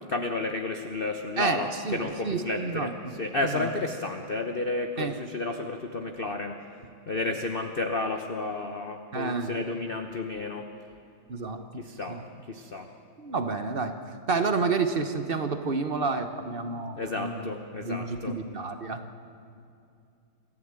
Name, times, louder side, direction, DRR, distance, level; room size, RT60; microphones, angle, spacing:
voice 1, 0.1-2.9 3.2-6.6 7.1-10.7 11.8-12.2 12.5-12.9 17.0-18.4, left 2 dB, 40° left, 5 dB, 0.9 m, -31 dB
voice 2, 1.4-3.7 5.0-5.1 9.1-9.6 11.3-11.8 12.1-12.2 13.2-17.5 17.8-19.0, right 4 dB, 35° right, 8 dB, 1.0 m, -30 dB
26.0 x 15.0 x 9.0 m, 2.6 s
omnidirectional pair, 2.4 m